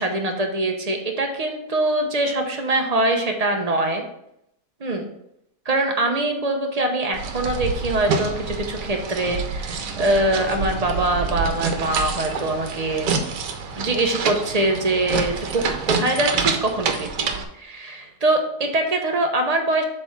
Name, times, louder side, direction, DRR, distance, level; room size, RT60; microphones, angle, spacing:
voice 1, 0.0-4.0 4.8-5.1 5.7-13.2 13.8-19.8, right 2 dB, 40° right, 3 dB, 0.6 m, -23 dB
sound 1, 7.1-17.4, right 5 dB, 85° right, 1.4 m, -27 dB
7.6 x 3.5 x 5.8 m, 0.79 s
omnidirectional pair, 1.8 m